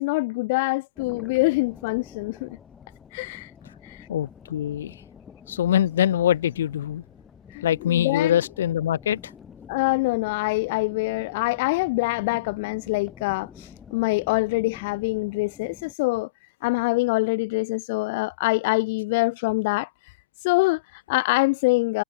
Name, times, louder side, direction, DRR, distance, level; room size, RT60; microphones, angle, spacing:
voice 1, 0.0-2.5 3.1-3.5 3.8-4.1 7.5-8.3 9.7-16.3 16.6-19.9 20.4-22.0, left 24 dB, 40° left, 0.3 m, -25 dB
sound 1, 1.0-15.9, left 7 dB, 10° left, 1.5 m, -48 dB
voice 2, 4.1-5.0 5.5-7.0 7.6-9.3, left 11 dB, 75° left, 0.9 m, -23 dB
supercardioid pair, 175°, 0 cm